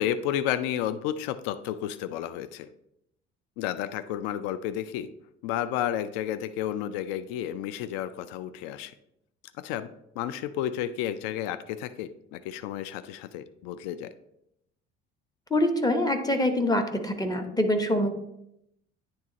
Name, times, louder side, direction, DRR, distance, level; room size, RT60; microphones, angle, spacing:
voice 1, 0.0-2.7 3.6-5.1 5.4-8.9 9.6-9.9 10.2-14.1, left 11 dB, 60° left, 13 dB, 0.5 m, -31 dB
voice 2, 15.5-18.1, left 1 dB, 10° left, 6 dB, 1.0 m, -25 dB
9.5 x 3.3 x 4.0 m, 0.80 s
figure-of-eight pair, 55°, 35 cm